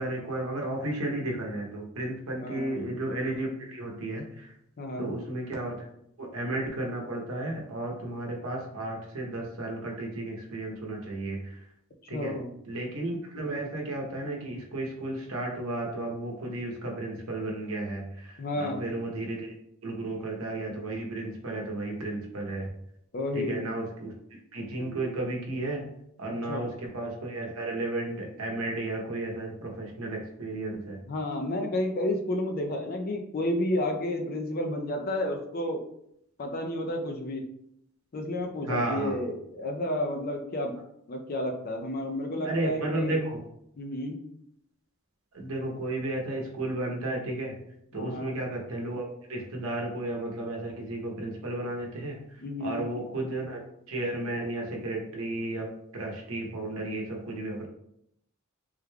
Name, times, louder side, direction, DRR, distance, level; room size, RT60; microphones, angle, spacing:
voice 1, 0.0-4.5 5.0-5.9 6.2-11.6 12.1-12.4 12.7-19.5 19.8-22.7 23.3-24.1 24.5-25.9 26.2-31.0 38.7-39.2 42.4-43.4 45.3-47.6 47.9-52.2 52.6-53.6 53.9-57.7, right 2 dB, 80° right, 0 dB, 0.8 m, -33 dB
voice 2, 2.4-2.8 4.8-5.1 12.1-12.6 18.4-18.8 23.1-23.6 26.5-26.7 31.1-35.8 36.4-37.4 38.1-40.7 41.1-43.2 43.8-44.2 47.9-48.3 52.4-52.9, left 1 dB, 45° left, 3 dB, 0.4 m, -31 dB
3.5 x 3.2 x 2.2 m, 0.74 s
head